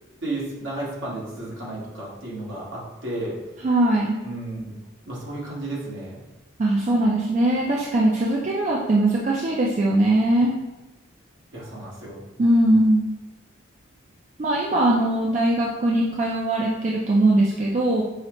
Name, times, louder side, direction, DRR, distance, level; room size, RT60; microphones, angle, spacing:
voice 1, 0.2-3.3 4.2-4.7 5.1-6.2 11.5-12.2, right 2 dB, 65° right, -5 dB, 1.2 m, -33 dB
voice 2, 3.6-4.2 6.6-10.5 12.4-13.1 14.4-18.0, right 1 dB, 35° right, -3 dB, 0.3 m, -20 dB
5.5 x 2.0 x 3.0 m, 1.1 s
head